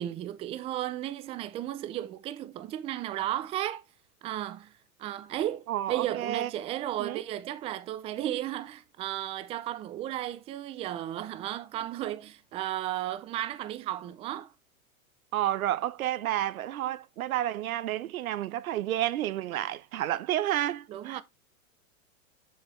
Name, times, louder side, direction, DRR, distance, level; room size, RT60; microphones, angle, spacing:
voice 1, 0.0-3.8 4.2-4.7 5.0-14.5 20.9-21.2, right 13 dB, 15° right, 0.4 m, -34 dB
voice 2, 5.7-6.5 7.0-7.2 15.3-21.2, right 13 dB, 80° right, 0.8 m, -30 dB
7.4 x 7.0 x 3.1 m
hypercardioid pair, 135°, 42 cm